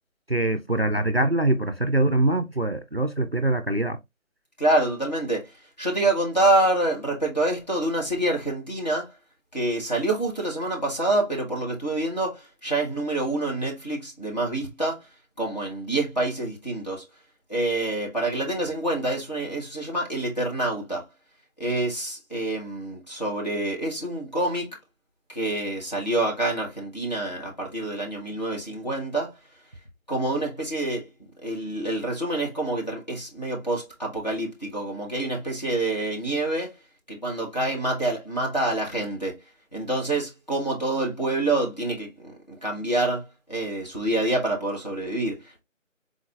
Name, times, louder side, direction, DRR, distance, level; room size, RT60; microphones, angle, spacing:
voice 1, 0.3-4.0, right 2 dB, 50° right, 0.4 m, -23 dB
voice 2, 4.6-5.5 5.8-9.1 9.5-15.0 15.4-17.0 17.5-21.0 21.6-24.7 25.3-29.3 30.1-31.0 31.4-36.7 37.1-39.3 39.7-45.6, right 2 dB, 30° left, 1.2 m, -27 dB
4.7 x 4.0 x 2.4 m
figure-of-eight pair, 175°, 40 cm